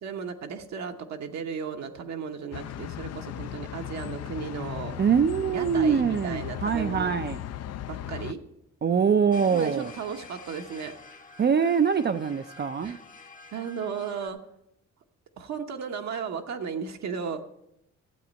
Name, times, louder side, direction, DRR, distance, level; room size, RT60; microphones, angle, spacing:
voice 1, 0.0-4.9 5.5-7.1 7.9-8.4 9.5-10.9 12.8-13.0 13.5-14.4 15.4-17.4, right 6 dB, 65° right, 4 dB, 1.0 m, -35 dB
sound 1, 2.5-8.3, left 11 dB, 55° left, 0.5 m, -36 dB
voice 2, 5.0-7.4 8.8-9.9 11.4-13.0, right 6 dB, 35° right, 9 dB, 0.5 m, -24 dB
sound 2, 9.3-14.3, left 4 dB, 25° left, 1.0 m, -48 dB
13.0 x 7.9 x 5.2 m, 0.84 s
cardioid pair, 90°, 30 cm